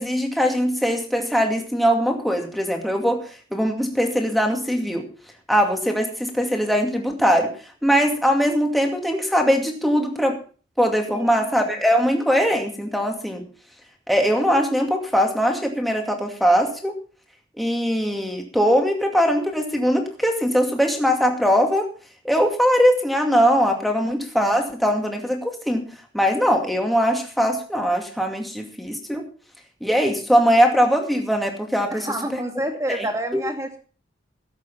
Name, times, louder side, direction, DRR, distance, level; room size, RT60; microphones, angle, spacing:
voice 1, 0.0-5.1 5.5-7.5 7.8-10.4 10.8-13.5 14.1-17.0 17.6-21.9 22.2-25.9 26.1-29.3 29.8-32.4 32.9-33.1, equal, ahead, 2 dB, 2.3 m, -21 dB
voice 2, 11.1-11.5 31.9-33.8, right 1 dB, 15° right, 3 dB, 2.4 m, -28 dB
17.0 x 8.2 x 5.6 m, 0.40 s
head